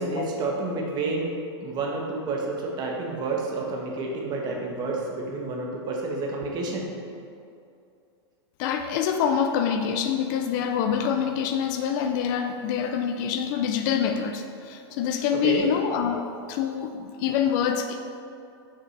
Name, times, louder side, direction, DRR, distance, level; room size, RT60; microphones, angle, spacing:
voice 1, 0.0-1.3 1.6-6.9 15.4-15.7, right 3 dB, 30° right, -1 dB, 1.2 m, -29 dB
voice 2, 8.6-18.2, left 7 dB, 45° left, 6 dB, 0.4 m, -26 dB
7.3 x 5.8 x 3.3 m, 2.5 s
hypercardioid pair, 140°, 15 cm